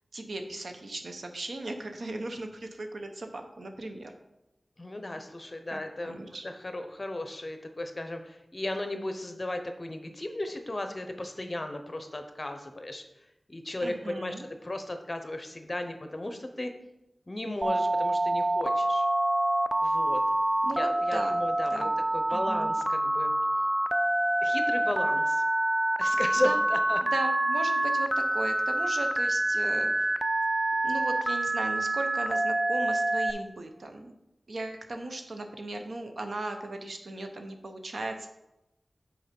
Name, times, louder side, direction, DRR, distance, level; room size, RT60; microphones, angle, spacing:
voice 1, 0.1-4.1 5.7-6.4 13.8-14.5 20.6-21.4 21.7-21.9 22.3-22.7 26.4-26.6 27.0-30.2 30.8-34.1 34.5-38.3, right 2 dB, 80° right, 5 dB, 0.8 m, -37 dB
voice 2, 4.8-6.2 6.4-13.0 13.5-14.3 14.6-16.7 17.3-19.0 19.8-20.2 20.7-23.3 24.4-25.4 26.0-27.0, left 1 dB, 35° left, 6 dB, 0.8 m, -35 dB
Telephone, 17.6-33.3, right 1 dB, 20° right, 0.4 m, -26 dB
6.4 x 4.6 x 5.3 m, 0.91 s
wide cardioid pair, 65°, 0 cm